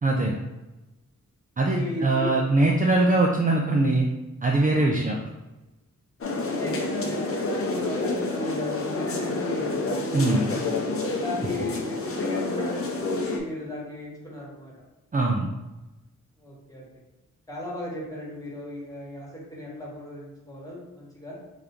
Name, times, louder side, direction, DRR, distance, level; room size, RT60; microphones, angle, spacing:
voice 1, 0.0-0.3 1.6-4.1 4.4-5.2 10.1-10.5 15.1-15.5, right 2 dB, 25° right, -1 dB, 0.4 m, -22 dB
voice 2, 1.6-2.3 3.0-3.2 4.8-5.0 6.5-10.8 11.2-14.7 16.4-16.8 17.5-21.4, left 1 dB, 10° left, -5 dB, 1.3 m, -36 dB
sound 1, 6.2-13.4, left 2 dB, 45° left, 0.6 m, -28 dB
3.7 x 2.9 x 3.4 m, 1.1 s
wide cardioid pair, 130°, 33 cm